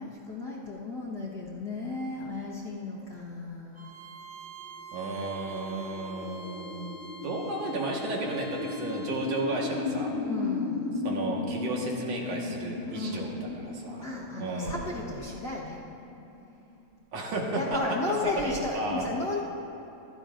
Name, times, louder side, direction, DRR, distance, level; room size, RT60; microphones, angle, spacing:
voice 1, 0.0-3.9 10.2-11.0 12.9-13.5 13.9-15.8 17.5-19.4, left 2 dB, 50° left, -5 dB, 1.2 m, -34 dB
Bowed string instrument, 3.7-9.5, right 4 dB, 30° right, 2.1 m, -46 dB
sound 1, 4.7-16.8, left 4 dB, 75° left, 3.4 m, -36 dB
voice 2, 4.9-10.2 11.0-14.1 14.4-14.8 17.1-17.8 18.1-19.1, right 2 dB, 60° right, -1 dB, 2.5 m, -33 dB
26.5 x 16.0 x 2.6 m, 2.9 s
omnidirectional pair, 3.6 m